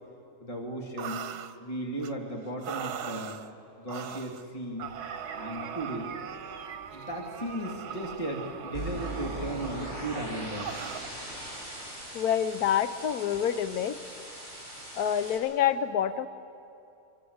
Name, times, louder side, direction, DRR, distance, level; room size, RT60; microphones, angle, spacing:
voice 1, 0.4-1.3 1.6-3.4 3.8-4.9 5.3-6.2 6.9-10.8, right 1 dB, 20° left, 0 dB, 2.5 m, -36 dB
sound 1, 1.0-1.5 2.0-2.1 2.6-3.5 3.9-4.4 4.8-11.1, right 8 dB, 85° right, 1.4 m, -40 dB
sound 2, 4.8-9.8, right 4 dB, 60° right, 2.5 m, -47 dB
sound 3, 8.7-15.4, right 1 dB, 40° right, 8.4 m, -40 dB
voice 2, 12.1-14.0 15.0-16.3, left 9 dB, 75° left, 11 dB, 1.3 m, -27 dB
25.0 x 25.0 x 8.0 m, 2.7 s
omnidirectional pair, 1.6 m